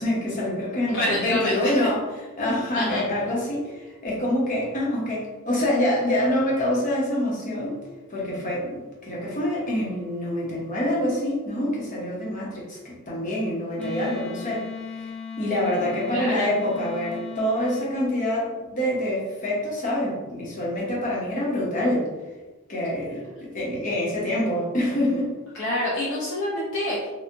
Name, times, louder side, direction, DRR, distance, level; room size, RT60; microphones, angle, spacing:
voice 1, 0.0-2.0 2.4-7.8 8.1-14.6 15.4-22.1 22.7-25.3, left 1 dB, 40° left, -5 dB, 1.1 m, -26 dB
voice 2, 0.9-1.8 2.7-3.0 16.1-16.5 25.5-27.1, left 1 dB, 60° left, -6 dB, 0.7 m, -27 dB
Wind instrument woodwind instrument, 13.8-17.9, left 5 dB, 5° left, 0.6 m, -36 dB
4.4 x 2.4 x 2.6 m, 1.2 s
head